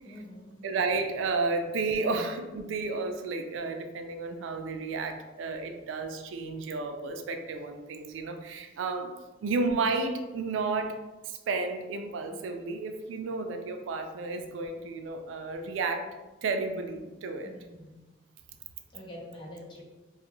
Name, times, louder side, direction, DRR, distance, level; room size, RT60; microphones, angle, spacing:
voice 1, 0.0-0.6 17.4-18.0 18.9-19.8, left 1 dB, 25° left, -3 dB, 0.6 m, -45 dB
voice 2, 0.6-9.2 9.4-11.0 11.2-17.5, right 3 dB, 90° right, 6 dB, 0.3 m, -32 dB
2.5 x 2.3 x 3.0 m, 1.1 s
head